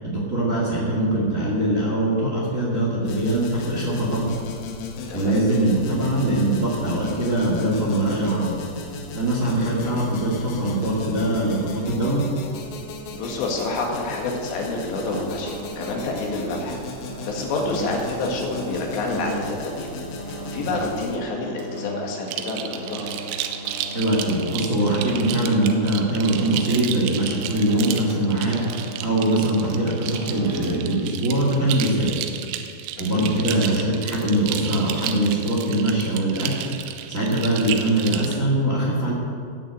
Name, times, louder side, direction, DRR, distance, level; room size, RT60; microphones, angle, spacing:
voice 1, 0.0-4.3 5.1-8.5 9.1-12.2 23.9-32.1 33.0-39.1, right 1 dB, 75° right, -4 dB, 0.7 m, -22 dB
sound 1, 3.1-21.2, left 3 dB, 80° left, 4.1 m, -36 dB
voice 2, 13.1-16.8 17.2-20.0 20.5-23.1 33.0-33.2, left 2 dB, 65° left, 0 dB, 3.8 m, -28 dB
sound 2, 14.9-31.3, right 3 dB, 50° right, 3.0 m, -37 dB
sound 3, 22.3-38.4, right 10 dB, 90° right, 3.5 m, -32 dB
17.5 x 6.5 x 8.1 m, 2.2 s
omnidirectional pair, 5.9 m